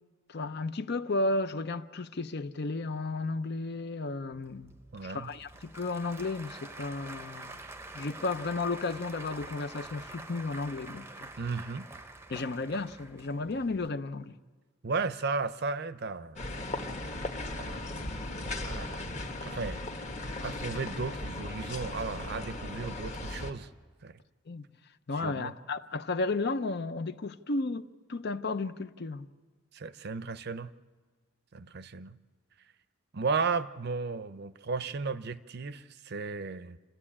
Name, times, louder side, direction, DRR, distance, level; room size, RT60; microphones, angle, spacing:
voice 1, 0.3-4.7 5.0-7.6 7.9-11.3 12.3-14.4 24.5-24.7 25.1-29.3, left 3 dB, 50° left, 0.6 m, -33 dB
Applause / Crowd, 4.3-13.9, right 2 dB, 10° right, 0.7 m, -47 dB
voice 2, 4.9-5.3 11.4-11.9 14.8-16.4 17.6-17.8 18.6-19.8 20.4-23.7 24.0-24.2 25.1-25.5 29.7-30.7 31.5-32.2 33.1-36.8, right 4 dB, 50° right, 0.6 m, -35 dB
sound 1, 16.4-23.5, left 2 dB, 35° left, 1.4 m, -37 dB
28.5 x 13.0 x 8.7 m
head